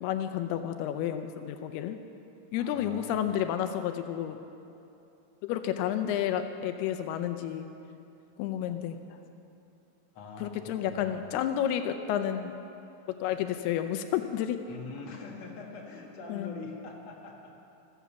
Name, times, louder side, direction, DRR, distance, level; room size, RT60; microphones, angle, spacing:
voice 1, 0.0-2.0 2.5-4.4 5.4-7.7 8.4-9.0 10.4-12.6 13.2-14.6 16.3-16.5, left 10 dB, 85° left, 8 dB, 2.7 m, -31 dB
voice 2, 2.6-3.2 10.1-11.3 14.7-17.5, left 4 dB, 50° left, -1 dB, 2.6 m, -44 dB
14.5 x 13.5 x 7.1 m, 2.8 s
omnidirectional pair, 4.6 m